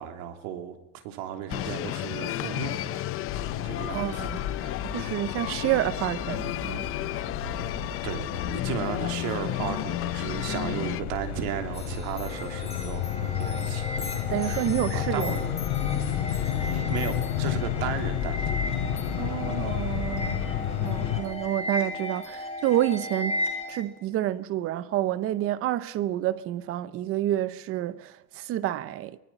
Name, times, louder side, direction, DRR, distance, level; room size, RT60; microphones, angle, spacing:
voice 1, 0.0-3.0 3.6-4.3 4.6-4.9 7.4-7.7 8.0-14.0 14.3-15.5 16.5-18.6, right 9 dB, 60° right, 3.2 m, -35 dB
sound 1, 1.5-11.0, left 14 dB, 30° left, 0.7 m, -33 dB
sound 2, 3.3-21.2, left 10 dB, 60° left, 3.9 m, -31 dB
voice 2, 3.9-4.4 4.8-6.9 14.3-15.3 19.1-20.5 20.8-29.2, right 13 dB, 30° right, 0.7 m, -29 dB
sound 3, 11.7-23.9, left 1 dB, 15° left, 2.5 m, -36 dB
24.0 x 21.5 x 5.9 m
cardioid pair, 175°, 43 cm